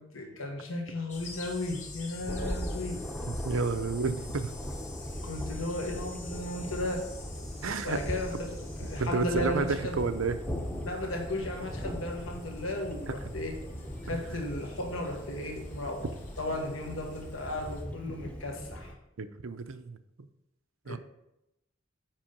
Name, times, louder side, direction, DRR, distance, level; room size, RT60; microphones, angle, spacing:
voice 1, 0.0-3.0 5.2-7.0 7.8-10.0 10.8-13.6 14.0-18.9 20.8-21.0, left 1 dB, 80° left, 2 dB, 1.4 m, -35 dB
sound 1, 1.1-17.8, left 2 dB, 35° left, 1.9 m, -47 dB
Thunder, 2.3-18.9, equal, 5° left, 0.7 m, -39 dB
voice 2, 3.3-4.5 7.6-8.0 9.0-10.4 14.1-14.2 19.2-20.3 20.9-21.0, right 4 dB, 75° right, 11 dB, 0.6 m, -31 dB
7.5 x 5.5 x 5.2 m, 0.86 s
head